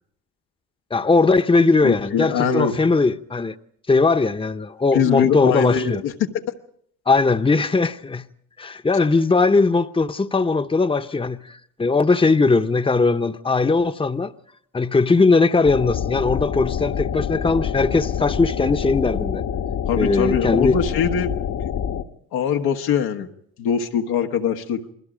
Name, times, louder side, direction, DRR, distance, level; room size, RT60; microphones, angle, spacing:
voice 1, 0.9-3.5 3.9-6.0 7.1-8.3 8.6-14.3 14.7-19.4 20.0-20.8, left 3 dB, 15° left, 0.9 m, -19 dB
voice 2, 1.8-2.8 4.9-6.3 19.9-21.3 21.7-21.8 22.3-23.3 23.6-24.8, left 7 dB, 90° left, 1.5 m, -22 dB
sound 1, 15.6-22.0, left 8 dB, 65° left, 1.4 m, -26 dB
29.0 x 21.0 x 5.1 m
supercardioid pair, 70°, 35 cm